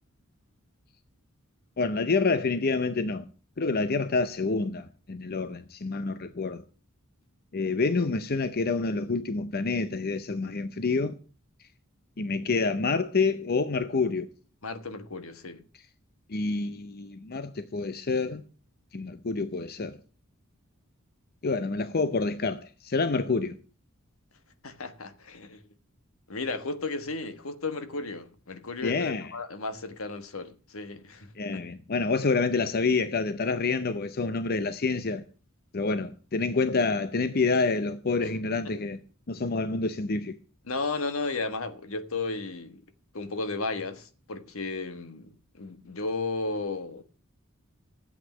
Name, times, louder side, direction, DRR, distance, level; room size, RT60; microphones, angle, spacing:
voice 1, 1.8-3.2 3.6-6.6 7.5-11.2 12.2-14.3 16.3-18.4 18.9-20.0 21.4-23.6 28.8-29.3 31.4-35.2 35.7-39.0 39.3-40.4, left 4 dB, 45° left, 0.6 m, -27 dB
voice 2, 14.6-15.6 24.6-25.6 26.3-31.6 38.2-38.3 38.6-38.8 40.7-42.8 43.1-45.3 45.6-47.0, left 3 dB, 75° left, 1.4 m, -34 dB
12.5 x 8.3 x 7.2 m
head